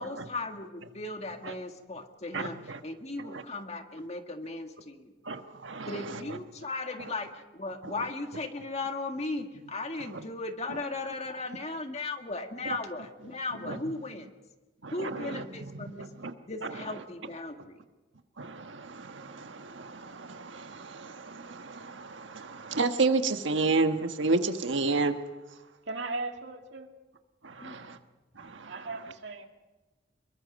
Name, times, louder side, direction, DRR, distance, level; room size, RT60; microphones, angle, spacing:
voice 1, 0.0-5.1 5.8-14.3 14.9-16.1 16.5-17.8 27.6-27.8, left 3 dB, 35° left, 5 dB, 1.8 m, -37 dB
voice 2, 2.3-2.8 5.2-6.0 13.7-13.8 14.8-15.4 16.0-16.3 18.4-25.2 27.4-28.0 28.4-28.7, right 3 dB, 90° right, 7 dB, 1.4 m, -31 dB
voice 3, 25.8-26.9 27.5-27.9 28.6-29.5, right 3 dB, 70° right, 4 dB, 2.2 m, -38 dB
25.0 x 22.5 x 5.3 m, 1.1 s
head